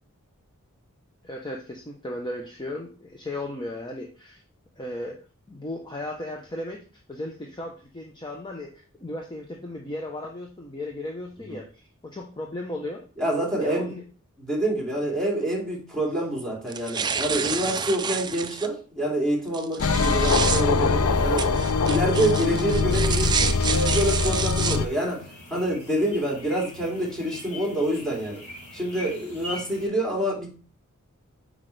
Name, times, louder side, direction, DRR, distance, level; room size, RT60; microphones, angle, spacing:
voice 1, 1.2-4.4 4.8-5.2 5.5-6.8 7.1-13.0 13.6-14.0 15.0-15.1, left 1 dB, 20° left, 1 dB, 0.8 m, -35 dB
voice 2, 13.2-13.9 14.4-21.5 21.9-25.2 25.5-28.4 28.7-30.5, right 1 dB, 5° left, -2 dB, 2.6 m, -27 dB
sound 1, 16.7-18.7 19.5-20.6 21.4-24.8, right 6 dB, 20° right, 0.4 m, -29 dB
sound 2, 19.8-24.9, left 4 dB, 70° left, 0.6 m, -23 dB
sound 3, 23.0-29.9, left 1 dB, 35° left, 3.5 m, -42 dB
8.2 x 5.1 x 3.3 m, 0.38 s
head